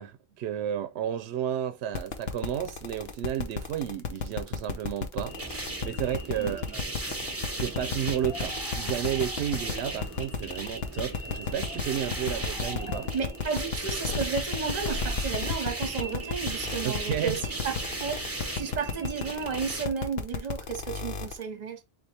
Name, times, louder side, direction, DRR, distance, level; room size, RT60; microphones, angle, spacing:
voice 1, 0.0-6.8 7.1-7.3 7.6-13.1 16.8-17.4, right 10 dB, 80° right, 0.8 m, -32 dB
sound 1, 1.9-21.4, left 6 dB, 70° left, 1.0 m, -33 dB
sound 2, 5.2-19.8, right 2 dB, 15° right, 1.1 m, -36 dB
sound 3, 8.2-15.5, left 1 dB, 30° left, 0.7 m, -42 dB
voice 2, 13.1-21.8, right 6 dB, 40° right, 1.0 m, -33 dB
4.1 x 3.8 x 3.3 m
omnidirectional pair, 1.1 m